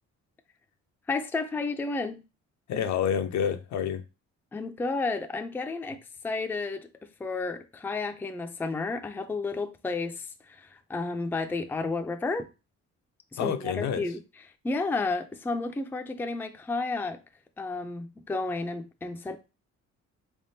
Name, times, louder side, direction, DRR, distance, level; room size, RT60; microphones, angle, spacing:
voice 1, 1.1-2.2 4.5-6.0 6.2-12.5 13.3-14.2 14.6-17.2 17.6-19.4, left 3 dB, 5° left, 0.4 m, -32 dB
voice 2, 2.7-4.0 13.4-14.0, left 8 dB, 65° left, 0.5 m, -28 dB
3.5 x 3.4 x 2.7 m
cardioid pair, 90°, 30 cm